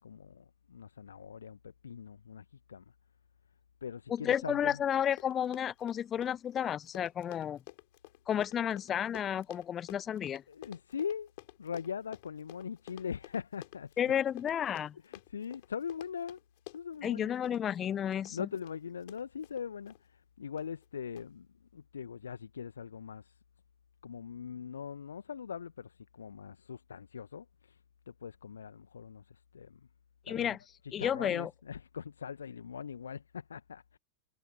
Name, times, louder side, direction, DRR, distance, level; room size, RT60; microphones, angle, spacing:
voice 1, 0.0-2.9 3.8-4.8 10.5-11.3 11.6-14.1 15.0-16.4 16.7-17.3 18.3-23.4 24.0-29.9 30.3-30.6 30.8-34.0, left 7 dB, 70° left, 1.4 m, -41 dB
voice 2, 4.1-7.6 8.3-10.4 14.0-15.0 17.0-18.5 30.3-30.6 30.9-31.5, left 9 dB, 25° left, 1.2 m, -32 dB
Run, 4.7-4.8 5.0-20.0 20.6-20.9 21.2-21.3, left 25 dB, 50° left, 4.6 m, -52 dB
figure-of-eight pair, 90°, 0 cm